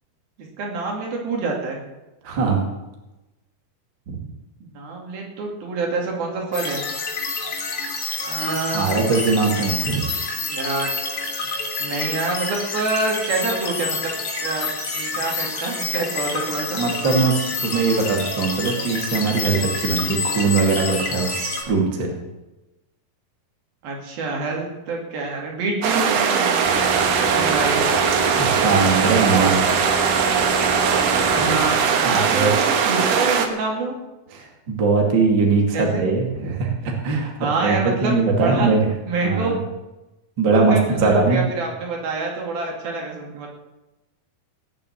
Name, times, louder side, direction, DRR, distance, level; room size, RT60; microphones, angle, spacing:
voice 1, 0.6-1.8 4.6-6.8 8.2-8.9 10.4-10.9 11.8-14.1 14.4-14.7 14.9-16.8 23.8-26.6 27.3-27.8 31.3-34.0 35.7-36.0 37.4-38.7 39.1-39.6 40.5-43.5, right 3 dB, 80° right, 0 dB, 4.4 m, -26 dB
voice 2, 2.2-2.6 4.1-4.2 8.7-10.1 16.8-22.1 28.4-29.6 31.4-31.5 32.1-32.5 34.3-36.8 37.0-37.3 37.6-38.9 39.2-39.6 40.4-40.8 41.0-41.5, right 4 dB, 35° right, 1 dB, 2.6 m, -21 dB
sound 1, 6.5-21.6, left 4 dB, 55° left, 4.2 m, -28 dB
sound 2, 25.8-33.5, right 6 dB, 60° right, 1.9 m, -20 dB
sound 3, 26.6-32.5 32.7-32.9, equal, 15° right, 1.7 m, -31 dB
18.5 x 6.7 x 8.4 m, 1.0 s
omnidirectional pair, 4.2 m